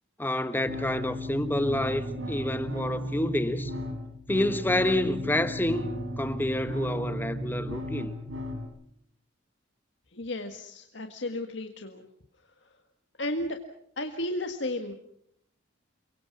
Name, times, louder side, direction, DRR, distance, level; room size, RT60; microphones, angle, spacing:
voice 1, 0.2-3.7 4.3-5.9 6.2-8.1, left 1 dB, 10° left, 1.2 m, -28 dB
sound 1, 0.7-8.7, left 1 dB, 85° right, 6.2 m, -35 dB
voice 2, 10.1-12.0 13.2-13.6 14.0-14.9, left 1 dB, 65° left, 1.7 m, -33 dB
29.0 x 23.5 x 6.0 m
head